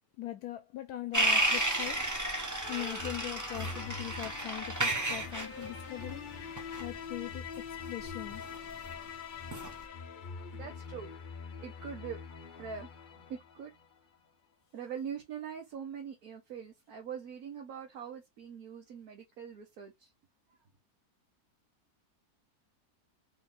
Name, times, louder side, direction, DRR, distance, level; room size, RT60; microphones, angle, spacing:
voice 1, 0.2-2.1 2.7-6.3 6.8-8.4, left 13 dB, 75° left, 1.1 m, -41 dB
sound 1, 1.1-8.9 9.4-9.8, right 1 dB, 20° right, 0.6 m, -32 dB
sound 2, 2.6-14.0, left 6 dB, 55° left, 0.5 m, -44 dB
voice 2, 10.5-11.1 11.6-12.2 12.6-12.9 13.3-13.7 14.7-20.1, right 7 dB, 65° right, 1.5 m, -43 dB
4.4 x 3.1 x 3.7 m
omnidirectional pair, 1.7 m